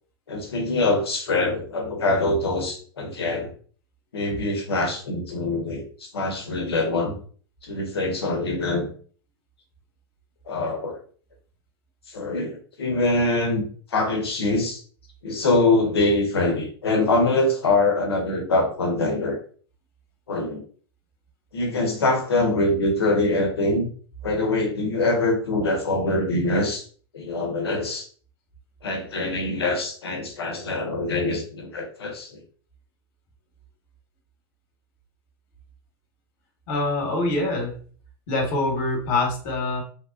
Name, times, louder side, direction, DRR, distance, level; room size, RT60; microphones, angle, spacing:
voice 1, 0.3-3.5 4.1-7.1 7.6-8.9 10.5-11.0 12.1-13.6 13.9-14.8 15.2-19.4 20.3-20.6 21.5-23.9 24.2-26.8 27.1-28.1 28.8-32.4, left 2 dB, 80° left, 3 dB, 0.9 m, -24 dB
voice 2, 36.7-37.7 38.3-39.8, left 2 dB, 50° left, 1 dB, 1.3 m, -24 dB
3.3 x 2.3 x 2.4 m, 0.44 s
hypercardioid pair, 105°, 13 cm